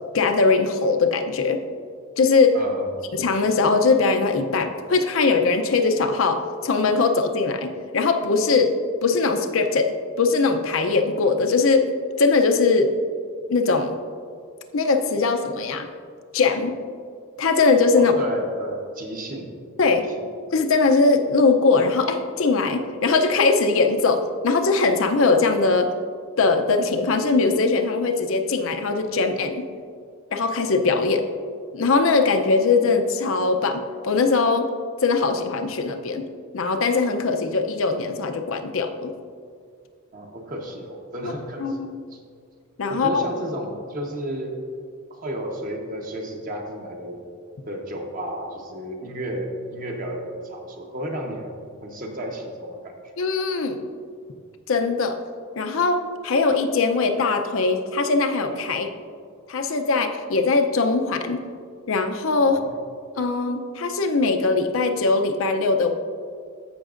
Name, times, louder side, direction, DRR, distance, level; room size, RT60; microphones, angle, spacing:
voice 1, 0.1-1.6 2.2-2.6 3.1-11.9 12.2-12.9 13.5-14.0 14.7-15.9 16.3-16.8 17.4-18.1 19.8-20.1 20.5-25.9 26.4-29.7 30.3-31.3 31.7-34.7 35.0-36.3 36.5-39.1 41.2-41.3 41.6-42.0 42.8-43.2 53.2-53.8 54.7-55.2 55.6-58.9 59.5-61.4 61.9-62.6 63.2-65.9, left 4 dB, 65° left, 6 dB, 0.6 m, -21 dB
voice 2, 2.5-2.9 17.9-19.6 20.2-20.3 40.1-42.2 42.9-44.5 45.1-47.2 47.7-51.5 51.8-53.0 62.4-62.7, right 1 dB, 40° right, 1 dB, 1.1 m, -32 dB
14.5 x 5.9 x 2.5 m, 2.2 s
head